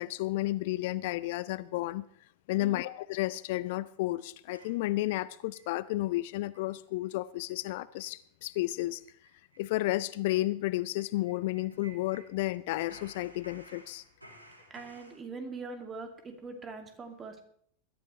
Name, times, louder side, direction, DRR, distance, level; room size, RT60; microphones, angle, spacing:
voice 1, 0.0-2.0 2.5-9.0 9.6-14.0, left 17 dB, 50° left, 0.4 m, -32 dB
sound 1, 4.6-5.7 6.1-6.2 6.5-6.8 7.0-7.1 7.5-7.7 8.0-8.2 8.5-8.6 8.9-12.6 12.9-15.2, right 1 dB, 85° right, 2.7 m, -56 dB
voice 2, 14.7-17.4, right 4 dB, 20° right, 2.4 m, -42 dB
21.0 x 12.5 x 3.3 m
figure-of-eight pair, 90°, 0 cm